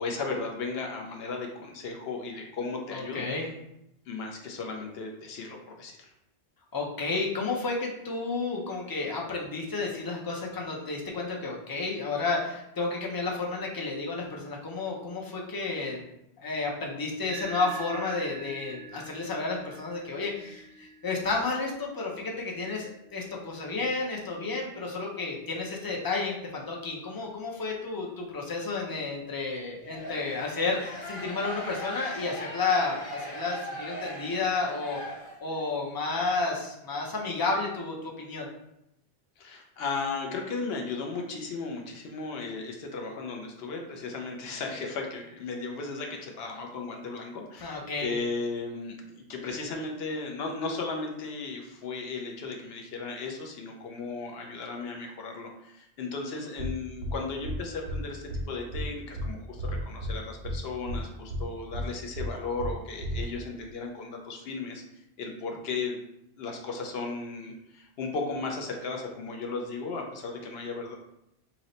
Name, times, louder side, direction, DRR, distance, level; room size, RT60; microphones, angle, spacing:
voice 1, 0.0-3.3 4.1-6.1 39.4-64.8 65.2-66.0 66.4-71.0, left 4 dB, 75° left, 1 dB, 0.8 m, -35 dB
voice 2, 2.9-3.5 6.7-16.0 16.4-35.0 35.4-38.5 47.6-48.2, left 3 dB, 35° left, -1 dB, 0.3 m, -31 dB
sound 1, 17.3-26.0, right 5 dB, 50° right, 0.6 m, -47 dB
sound 2, 29.8-35.7, equal, 55° left, 1.3 m, -39 dB
sound 3, 56.6-56.7 57.0-57.1 57.4-57.6 57.9-58.0 58.3-58.4 58.7-58.9 59.2-59.3 59.6-60.1 60.4-60.6 60.9-61.0 61.3-61.4 61.7-61.9 62.2-62.3 62.6-62.7 63.0-63.2, equal, 85° right, 0.8 m, -32 dB
2.8 x 2.0 x 3.8 m, 0.82 s
omnidirectional pair, 1.1 m